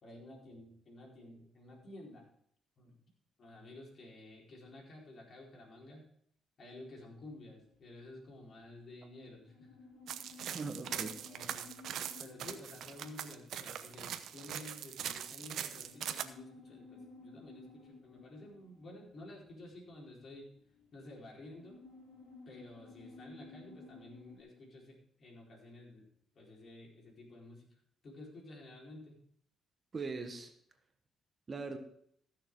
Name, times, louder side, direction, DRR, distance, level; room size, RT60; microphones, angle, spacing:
voice 1, 0.0-2.2 2.8-3.0 3.4-6.1 6.6-9.7 10.4-11.8 12.2-20.5 20.9-21.8 22.5-26.1 26.3-27.7 28.0-29.2, left 1 dB, 50° left, -2 dB, 4.4 m, -52 dB
sound 1, 7.2-24.4, left 3 dB, 90° left, 3.6 m, -57 dB
sound 2, 10.1-16.2, right 9 dB, 75° right, 0.8 m, -41 dB
voice 2, 10.5-11.1 29.9-30.5 31.5-31.8, right 4 dB, 35° right, 7 dB, 1.3 m, -40 dB
15.0 x 6.7 x 4.7 m, 0.66 s
cardioid pair, 90°, 0 cm